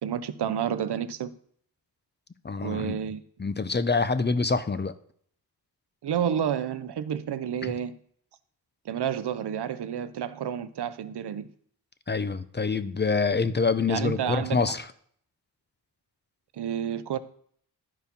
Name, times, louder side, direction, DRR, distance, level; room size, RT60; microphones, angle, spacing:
voice 1, 0.0-1.3 2.6-3.2 6.0-8.0 8.8-11.5 13.9-14.6 16.5-17.2, right 8 dB, 75° right, 0.8 m, -30 dB
voice 2, 2.4-3.0 3.4-4.9 7.6-7.7 12.1-14.8, left 4 dB, 25° left, 0.7 m, -26 dB
11.5 x 4.7 x 5.3 m
cardioid pair, 65°, 40 cm